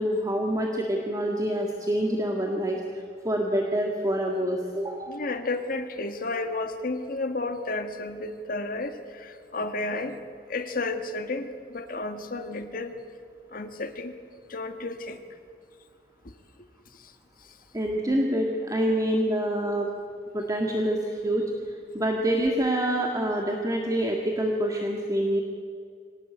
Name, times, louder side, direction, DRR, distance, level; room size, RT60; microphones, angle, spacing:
voice 1, 0.0-2.8 3.2-5.2 17.7-19.9 20.3-25.4, right 1 dB, 20° right, 1 dB, 1.8 m, -26 dB
voice 2, 5.1-10.2 10.5-13.0 13.5-14.1 14.5-15.2 16.9-17.1 17.5-17.6, left 2 dB, 55° left, 8 dB, 1.6 m, -32 dB
25.0 x 18.5 x 8.5 m, 2.3 s
head